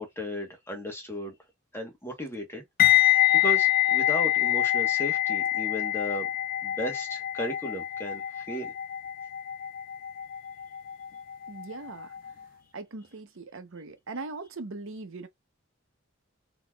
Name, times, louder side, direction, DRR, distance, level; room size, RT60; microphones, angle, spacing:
voice 1, 0.0-1.3 1.7-6.3 6.6-8.7, equal, 10° left, 1.1 m, -36 dB
sound 1, 2.8-11.8 12.0-12.3, left 14 dB, 45° left, 0.3 m, -25 dB
voice 2, 11.5-12.4 12.7-15.3, right 3 dB, 65° right, 0.8 m, -40 dB
4.0 x 2.9 x 2.3 m
head